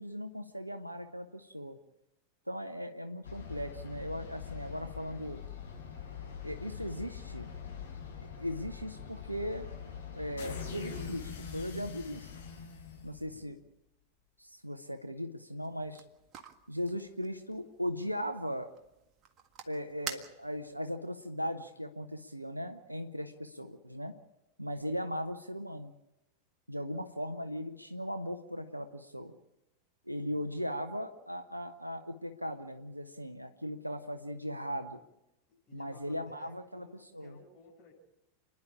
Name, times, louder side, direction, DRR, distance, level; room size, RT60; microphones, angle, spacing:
voice 1, 0.0-1.8 2.5-5.4 6.4-7.5 8.4-9.7 10.1-12.3 13.0-13.6 14.4-16.0 16.7-18.7 19.7-24.1 24.6-25.9 26.7-29.3 30.1-35.0 35.7-37.4, equal, 90° right, 8 dB, 0.9 m, -38 dB
sound 1, 3.2-13.5, left 6 dB, 70° left, 5.9 m, -43 dB
sound 2, 15.6-20.8, right 7 dB, 30° right, 1.8 m, -48 dB
voice 2, 35.5-37.9, left 3 dB, 40° left, -3 dB, 7.6 m, -58 dB
29.5 x 11.0 x 8.6 m, 0.92 s
figure-of-eight pair, 90°, 0 cm